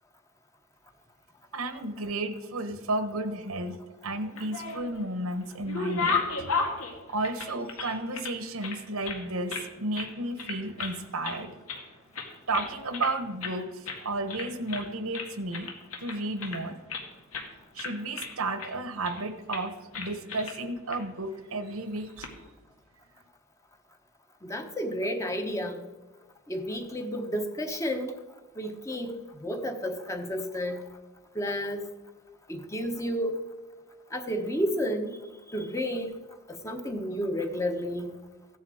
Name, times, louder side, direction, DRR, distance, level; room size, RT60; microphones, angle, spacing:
voice 1, 1.5-3.8 4.0-6.6 7.1-11.5 12.5-15.7 16.0-16.8 17.7-22.3, right 2 dB, 80° right, 9 dB, 1.2 m, -33 dB
sound 1, 4.2-5.0 5.4-8.3 8.6-9.7 9.9-10.1 10.4-11.0 11.2-11.9 12.1-13.1 13.4-13.6 13.8-14.0 14.3-14.9 15.1-17.0 17.3-17.5 17.8-18.7 19.0-19.2 19.5-19.7 19.9-20.6 20.9-21.0 22.0-22.3, left 4 dB, 85° left, 2.0 m, -34 dB
voice 2, 24.4-25.8 26.5-28.1 28.6-30.8 31.3-31.8 32.5-33.4 34.1-35.2 35.5-36.2 36.5-38.1, equal, 15° left, 5 dB, 1.0 m, -31 dB
15.0 x 10.5 x 4.9 m, 1.1 s
head